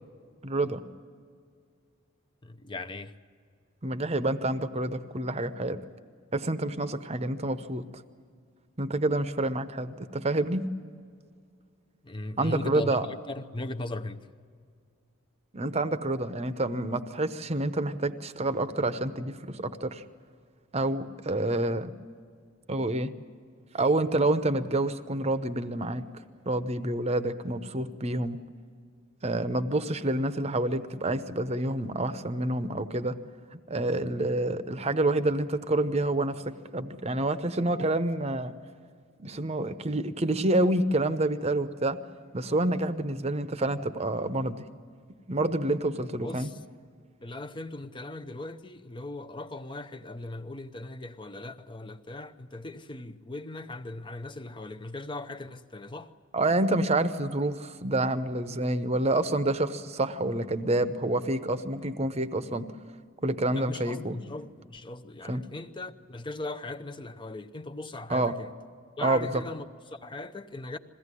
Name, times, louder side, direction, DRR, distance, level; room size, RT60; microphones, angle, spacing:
voice 1, 0.4-0.8 3.8-5.8 6.3-7.8 8.8-10.6 12.4-13.1 15.5-20.0 20.7-21.9 22.7-23.1 23.7-26.0 26.5-28.4 29.2-33.2 33.5-38.5 39.2-42.0 42.3-44.6 45.3-46.5 56.3-62.7 63.2-64.2 65.3-65.4 68.1-68.3 69.0-69.4, right 2 dB, 30° right, 0.9 m, -28 dB
voice 2, 2.4-3.1 12.0-14.3 46.1-46.6 47.2-56.1 63.5-68.5 69.0-70.8, left 2 dB, 25° left, 0.7 m, -39 dB
21.5 x 16.5 x 9.8 m
head